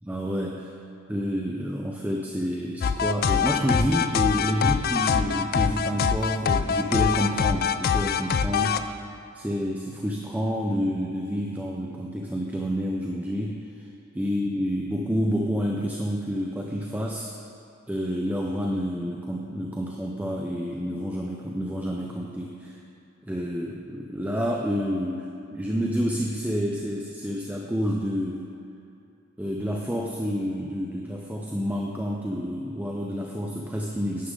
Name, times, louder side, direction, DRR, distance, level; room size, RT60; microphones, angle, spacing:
voice 1, 0.1-0.7 1.1-8.8 9.3-13.9 14.1-17.3 17.9-22.8 23.2-28.4 29.4-34.3, equal, 10° right, -1 dB, 0.5 m, -29 dB
sound 1, 2.8-8.8, left 7 dB, 45° left, 0.4 m, -24 dB
11.0 x 9.8 x 3.8 m, 2.7 s
head